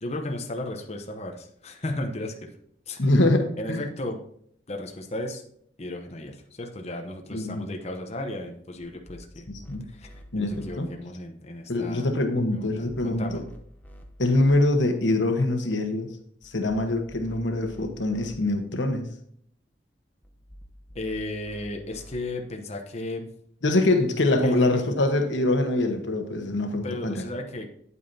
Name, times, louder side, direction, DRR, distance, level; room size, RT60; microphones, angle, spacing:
voice 1, 0.0-2.3 2.9-3.0 3.6-4.2 4.7-5.4 5.8-9.5 9.9-12.1 12.5-13.4 20.9-23.3 24.4-24.8 26.8-27.7, left 1 dB, 35° left, 3 dB, 0.9 m, -34 dB
voice 2, 3.0-3.8 7.3-7.8 9.5-9.8 10.3-10.9 11.7-13.4 14.2-16.1 16.4-19.1 23.6-27.2, left 2 dB, 90° left, 6 dB, 1.2 m, -24 dB
sound 1, 8.8-10.7 12.6-14.5 16.4-18.3 20.2-22.2, equal, 10° left, 0.8 m, -48 dB
9.1 x 8.3 x 2.8 m, 0.67 s
head